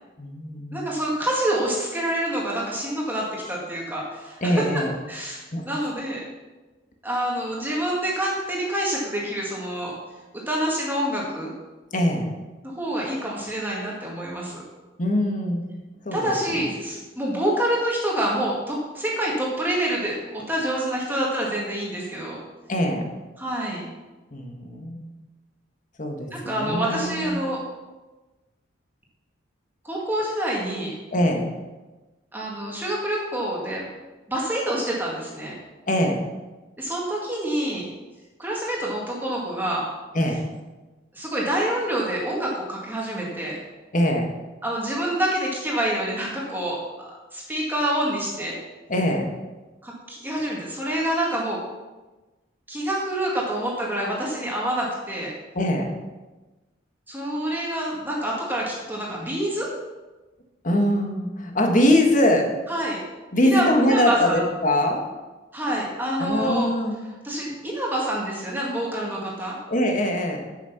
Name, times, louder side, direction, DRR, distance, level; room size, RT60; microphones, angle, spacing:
voice 1, 0.2-0.9 4.4-4.9 5.5-5.7 11.9-12.2 15.0-15.6 16.0-16.6 22.7-23.1 24.3-25.1 26.0-27.4 31.1-31.4 35.9-36.2 40.1-40.4 43.9-44.3 48.9-49.3 55.5-55.9 60.6-62.5 63.3-65.0 66.2-67.0 69.7-70.4, left 1 dB, 40° left, 2 dB, 1.5 m, -22 dB
voice 2, 0.7-4.7 5.1-6.2 7.0-9.9 10.5-11.5 12.6-14.6 16.1-22.4 23.4-23.8 26.3-27.6 29.8-30.9 32.3-33.9 34.3-35.5 36.8-37.9 38.4-39.9 41.1-43.6 44.6-46.8 47.3-48.5 49.8-51.6 52.7-55.3 57.1-59.7 62.7-63.0 63.4-64.4 65.5-66.7 67.2-69.5, right 1 dB, 10° right, -4 dB, 1.9 m, -27 dB
8.2 x 7.5 x 5.8 m, 1.2 s
head